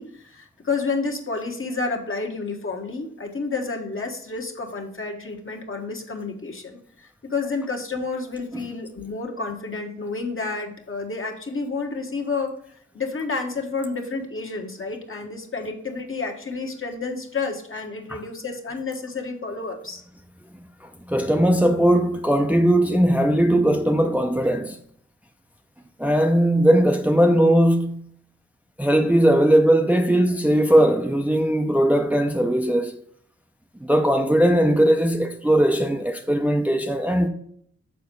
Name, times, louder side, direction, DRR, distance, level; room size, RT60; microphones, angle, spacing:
voice 1, 0.0-12.5 12.9-20.0, left 4 dB, 45° left, 1.3 m, -30 dB
voice 2, 21.1-24.8 26.0-28.0 28.8-33.0 33.8-37.3, right 1 dB, 5° right, 0.6 m, -19 dB
6.8 x 4.2 x 5.3 m
cardioid pair, 45°, 29 cm